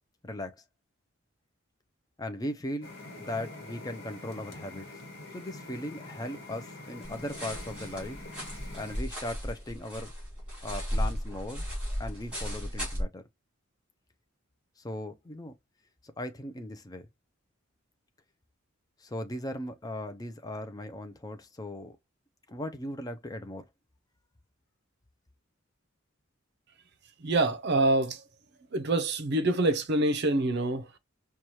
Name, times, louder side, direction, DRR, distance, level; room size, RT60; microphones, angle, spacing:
voice 1, 0.2-0.5 2.2-2.9 3.2-4.9 5.3-8.2 8.7-10.1 10.6-11.6 12.0-13.2 14.8-15.5 16.0-17.1 19.0-22.0 22.5-23.6, left 1 dB, 15° left, 0.5 m, -38 dB
sound 1, 2.8-9.0, left 2 dB, 50° left, 1.4 m, -45 dB
sound 2, 7.0-13.0, equal, 5° right, 2.0 m, -35 dB
voice 2, 27.2-28.2 28.7-31.0, right 2 dB, 50° right, 0.6 m, -26 dB
4.6 x 2.3 x 2.8 m
head